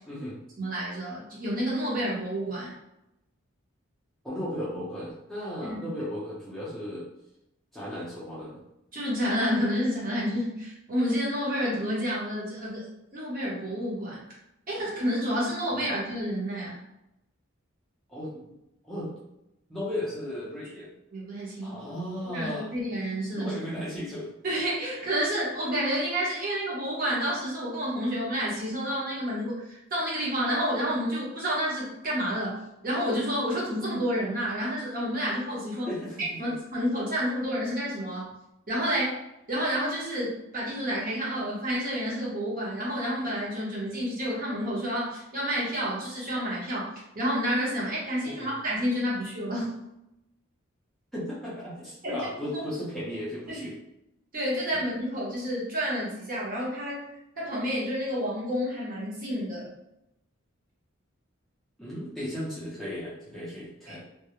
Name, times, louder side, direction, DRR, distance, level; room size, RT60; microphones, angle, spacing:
voice 1, 0.1-0.4 4.2-7.1 7.7-8.6 15.8-15.9 18.1-18.5 18.8-19.1 19.7-20.9 21.6-22.7 23.4-24.3 35.8-36.5 48.3-48.5 51.1-53.8 54.7-54.8 61.8-64.0, equal, ahead, -9 dB, 0.5 m, -35 dB
voice 2, 0.6-2.8 5.6-5.8 8.9-12.9 13.1-14.2 14.7-16.8 21.1-21.8 22.3-23.6 24.4-35.9 36.4-38.3 38.7-39.2 39.5-46.9 47.1-49.7 52.0-52.6 53.5-53.6 54.3-57.0 57.4-59.7 63.9-64.0, equal, 40° right, -6 dB, 0.8 m, -29 dB
2.3 x 2.0 x 2.9 m, 0.86 s
head